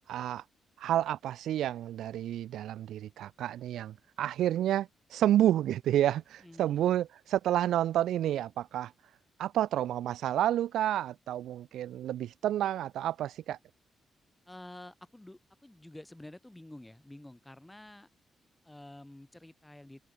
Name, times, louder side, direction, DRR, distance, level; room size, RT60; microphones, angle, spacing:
voice 1, 0.1-0.4 0.8-8.9 9.4-13.6, right 12 dB, 80° right, 1.0 m, -30 dB
voice 2, 6.4-6.9 14.5-18.1 18.6-20.1, left 1 dB, 10° left, 5.0 m, -50 dB
open air
supercardioid pair, 55°, 0 cm